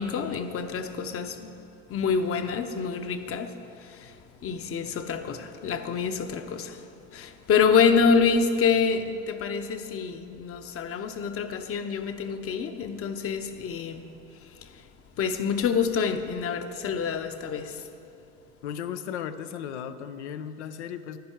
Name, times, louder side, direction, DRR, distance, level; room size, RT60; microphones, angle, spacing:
voice 1, 0.0-1.6 1.9-4.2 4.4-6.9 7.1-14.1 14.4-14.8 15.2-17.8, left 6 dB, 45° left, 0.9 m, -27 dB
voice 2, 18.6-21.2, left 8 dB, 90° left, 0.6 m, -35 dB
10.5 x 10.0 x 4.5 m
supercardioid pair, 85°, 33 cm